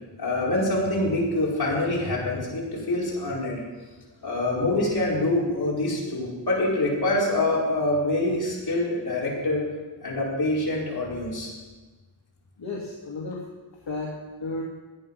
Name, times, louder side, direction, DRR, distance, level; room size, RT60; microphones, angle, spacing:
voice 1, 0.2-3.6 4.2-9.6 10.0-11.5, left 2 dB, 55° left, -4 dB, 4.9 m, -25 dB
voice 2, 12.6-13.5 13.8-14.6, left 2 dB, 70° left, -3 dB, 2.3 m, -33 dB
16.5 x 10.0 x 5.6 m, 1.3 s
wide cardioid pair, 110°, 46 cm